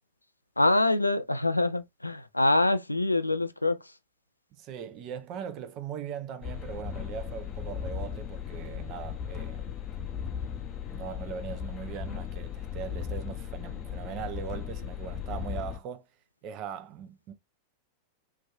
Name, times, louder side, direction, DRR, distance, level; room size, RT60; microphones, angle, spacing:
voice 1, 0.6-3.9, left 2 dB, 85° left, 0.3 m, -25 dB
voice 2, 4.5-9.7 10.9-16.0 16.4-17.3, right 8 dB, 40° right, 0.6 m, -40 dB
sound 1, 6.4-15.8, left 8 dB, 30° left, 0.6 m, -37 dB
3.1 x 2.5 x 2.4 m
figure-of-eight pair, 90°, 0 cm